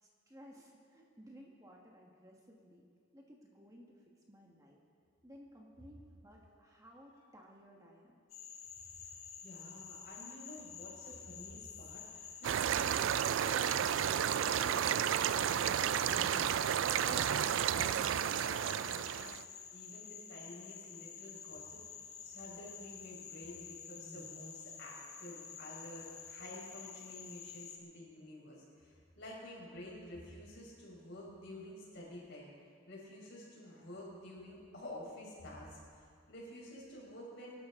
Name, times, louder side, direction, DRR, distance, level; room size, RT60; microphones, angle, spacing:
voice 1, 0.0-2.8 3.1-4.8 5.2-8.2, equal, 15° right, -1 dB, 1.4 m, -57 dB
Frog, 8.3-27.8, left 7 dB, 85° left, 1.7 m, -50 dB
voice 2, 9.4-19.4 19.7-21.8 22.2-32.5 32.8-37.5, left 1 dB, 55° left, -4 dB, 4.9 m, -50 dB
sound 1, 12.4-19.4, right 9 dB, 65° right, 0.3 m, -32 dB
24.5 x 12.0 x 3.7 m, 2.2 s
head